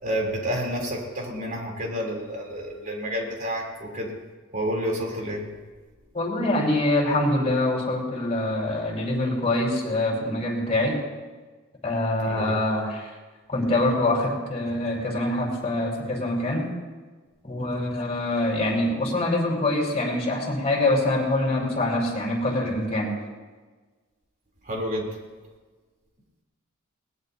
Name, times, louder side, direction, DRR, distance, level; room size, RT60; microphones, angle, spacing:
voice 1, 0.0-4.1 4.5-5.5 12.2-12.5 24.6-25.2, equal, 40° right, -1 dB, 3.8 m, -29 dB
voice 2, 6.1-11.0 11.8-13.1 13.5-16.7 17.4-23.1, left 1 dB, 30° left, -2 dB, 5.0 m, -24 dB
20.5 x 19.5 x 2.9 m, 1.4 s
head